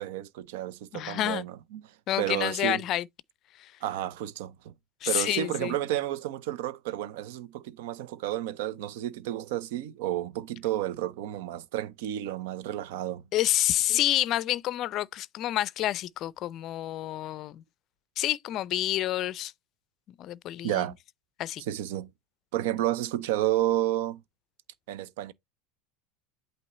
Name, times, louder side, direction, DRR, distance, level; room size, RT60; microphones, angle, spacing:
voice 1, 0.0-1.8 2.2-2.8 3.8-4.7 5.1-13.2 13.9-14.0 20.6-20.9 21.6-22.1 22.5-24.2 24.9-25.3, right 13 dB, 70° right, 0.6 m, -31 dB
voice 2, 0.9-1.4 2.1-3.1 3.6-3.7 5.0-5.7 13.3-17.6 18.2-19.5 20.2-20.9 21.4-21.6, left 13 dB, 45° left, 0.4 m, -28 dB
8.4 x 2.9 x 4.2 m
hypercardioid pair, 95°, 0 cm